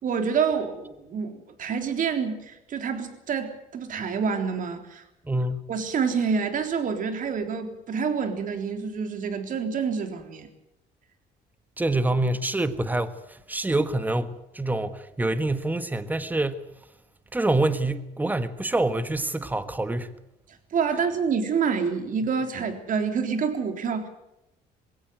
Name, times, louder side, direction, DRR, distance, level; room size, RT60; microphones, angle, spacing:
voice 1, 0.0-5.0 5.3-5.4 5.7-10.5 20.7-24.1, right 6 dB, 50° right, 3.6 m, -27 dB
voice 2, 5.3-5.7 11.8-13.1 13.5-16.6 17.3-20.1, right 2 dB, 10° right, 1.5 m, -26 dB
22.0 x 17.0 x 8.2 m
cardioid pair, 110°, 17 cm